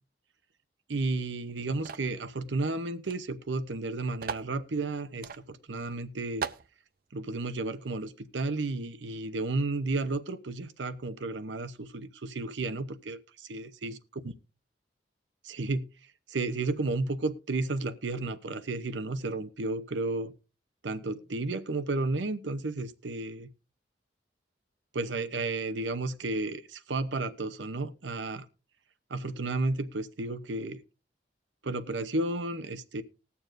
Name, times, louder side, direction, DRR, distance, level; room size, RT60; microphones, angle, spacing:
voice 1, 0.9-6.5 7.1-14.0 15.4-15.9 16.3-20.3 20.8-23.5 24.9-28.5 29.1-30.8 31.6-33.0, right 2 dB, 85° right, 0.8 m, -32 dB
sound 1, 1.9-2.2 3.1-3.2 3.4-3.5 4.2-4.5 5.2-5.4 5.9-6.0 6.4-6.7, right 6 dB, 55° right, 0.5 m, -36 dB
20.5 x 7.0 x 2.5 m
head